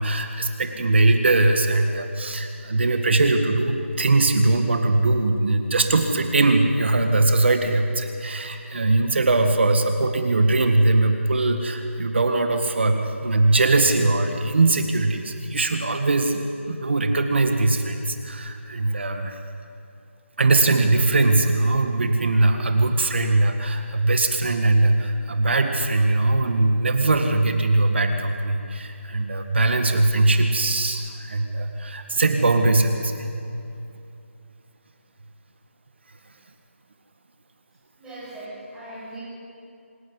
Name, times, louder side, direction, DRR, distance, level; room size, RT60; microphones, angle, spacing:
voice 1, 0.0-19.4 20.4-33.3, right 2 dB, 55° right, 5 dB, 1.8 m, -21 dB
voice 2, 38.0-39.2, right 1 dB, 5° right, -10 dB, 6.0 m, -39 dB
26.0 x 11.0 x 9.8 m, 2.7 s
figure-of-eight pair, 170°, 7 cm